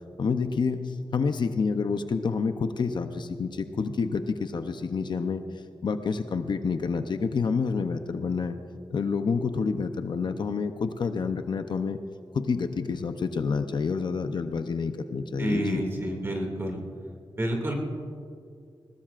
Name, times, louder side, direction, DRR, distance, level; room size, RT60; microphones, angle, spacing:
voice 1, 0.2-5.4 5.8-8.6 8.9-12.0 12.3-15.8, left 5 dB, 55° left, 8 dB, 0.6 m, -28 dB
voice 2, 15.4-16.8 17.4-17.7, right 1 dB, 25° right, 1 dB, 2.3 m, -29 dB
20.5 x 19.5 x 2.5 m, 2.4 s
wide cardioid pair, 160°, 9 cm